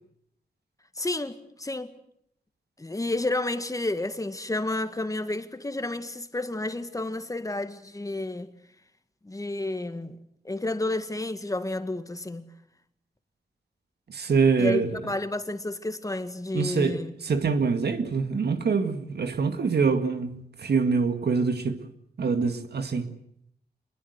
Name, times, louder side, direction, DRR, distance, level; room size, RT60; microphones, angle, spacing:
voice 1, 1.0-1.9 2.8-8.5 9.2-10.2 10.4-12.5 14.6-17.1, left 2 dB, 20° left, 1.8 m, -31 dB
voice 2, 14.1-15.0 16.5-21.8 22.2-23.1, right 5 dB, 70° right, 2.0 m, -25 dB
27.0 x 21.5 x 8.2 m
wide cardioid pair, 95°, 17 cm